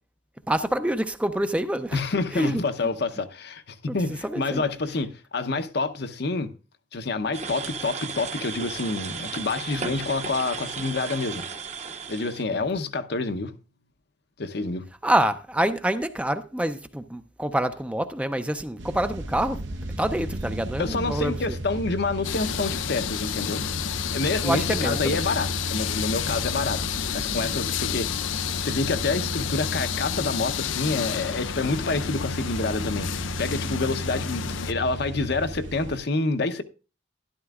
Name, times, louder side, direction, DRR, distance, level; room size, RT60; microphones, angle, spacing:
voice 1, 0.5-2.0 2.3-2.6 3.9-4.0 4.2-4.6 9.8-10.0 15.0-19.6 20.0-21.3 24.4-25.2, right 1 dB, 5° right, 0.5 m, -26 dB
voice 2, 1.9-6.5 6.9-11.4 12.1-13.5 14.4-14.9 20.8-23.7 24.1-26.8 27.1-28.3 28.6-33.1 33.4-36.6, left 3 dB, 60° left, 0.8 m, -28 dB
sound 1, 7.3-12.4, right 5 dB, 35° right, 0.9 m, -35 dB
sound 2, 18.8-36.0, right 1 dB, 75° right, 0.9 m, -34 dB
sound 3, 22.2-34.7, left 10 dB, 80° left, 0.5 m, -31 dB
12.5 x 11.5 x 2.4 m
head